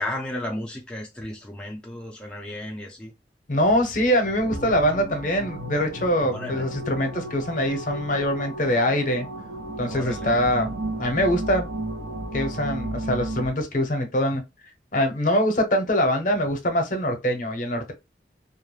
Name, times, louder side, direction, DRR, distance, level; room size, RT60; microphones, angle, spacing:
voice 1, 0.0-3.1 6.3-6.6 9.9-10.2, left 1 dB, 5° left, 0.4 m, -33 dB
voice 2, 3.5-9.3 9.8-10.7 11.0-11.7 12.3-14.4 14.9-17.9, equal, 45° left, 0.7 m, -23 dB
sound 1, 4.4-13.5, right 1 dB, 80° right, 0.5 m, -33 dB
2.3 x 2.0 x 3.1 m
head